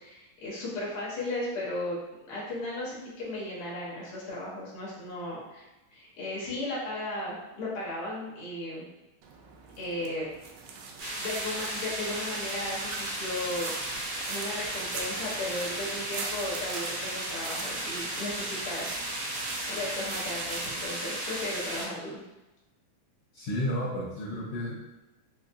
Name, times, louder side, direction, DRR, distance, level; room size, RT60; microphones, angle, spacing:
voice 1, 0.0-2.0 2.2-8.8 9.8-10.3 11.2-19.4 19.7-22.2, left 1 dB, 60° left, -5 dB, 1.7 m, -36 dB
sound 1, 9.2-20.9, right 4 dB, 85° right, 1.9 m, -42 dB
sound 2, 11.0-21.9, right 1 dB, 65° right, 1.8 m, -35 dB
voice 2, 23.3-24.8, equal, 75° left, -7 dB, 1.5 m, -32 dB
5.3 x 2.4 x 2.2 m, 1.0 s
omnidirectional pair, 3.5 m